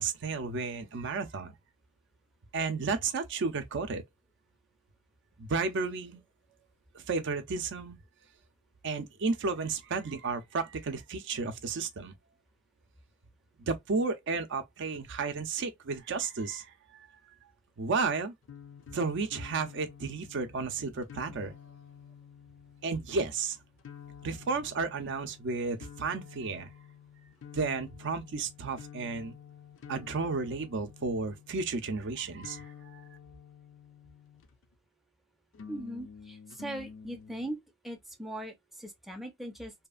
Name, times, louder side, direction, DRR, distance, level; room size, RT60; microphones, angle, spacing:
voice 1, 0.0-1.5 2.5-4.0 5.4-6.2 6.9-8.0 8.8-12.1 13.7-17.2 17.8-18.3 18.9-21.5 22.8-23.6 24.2-26.7 27.5-29.3 29.9-33.0, right 4 dB, 60° right, 0.5 m, -33 dB
sound 1, 18.4-34.7 35.5-37.5, left 7 dB, 65° left, 0.4 m, -50 dB
voice 2, 35.7-37.6 37.8-39.7, right 1 dB, ahead, 0.4 m, -40 dB
2.7 x 2.4 x 2.2 m
head